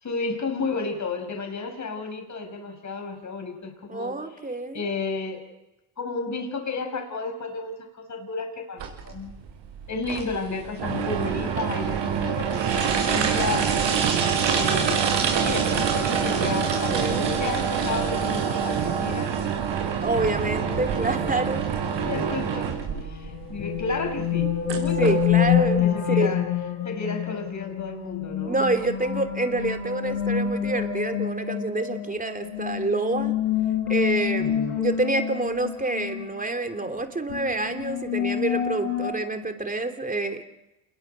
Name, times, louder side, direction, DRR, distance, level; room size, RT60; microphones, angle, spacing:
voice 1, 0.0-4.2 4.7-5.4 6.0-9.3 9.9-13.7 14.5-19.4 22.0-26.5 26.8-28.6 34.4-34.8, left 4 dB, 35° left, 5 dB, 5.8 m, -32 dB
voice 2, 3.9-4.8 16.6-17.3 20.0-21.7 25.0-25.9 26.2-26.3 28.4-33.3 33.9-40.4, right 2 dB, 15° right, 6 dB, 3.2 m, -27 dB
sound 1, 8.8-25.8, right 7 dB, 60° right, 5.8 m, -26 dB
sound 2, 19.9-39.1, left 9 dB, 85° left, 5.9 m, -28 dB
28.0 x 21.5 x 6.7 m, 0.94 s
cardioid pair, 100°, 49 cm